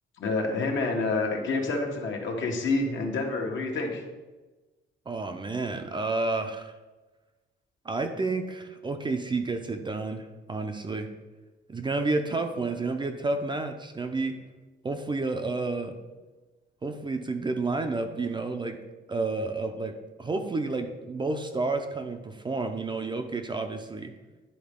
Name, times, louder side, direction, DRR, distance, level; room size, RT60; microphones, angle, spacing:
voice 1, 0.2-4.0, left 3 dB, 65° left, 1 dB, 1.3 m, -28 dB
voice 2, 5.1-6.7 7.8-11.1 11.7-14.4 14.8-15.9 16.8-18.8 19.1-24.1, right 3 dB, 20° right, 6 dB, 0.5 m, -30 dB
10.0 x 4.1 x 3.6 m, 1.2 s
cardioid pair, 135°, 21 cm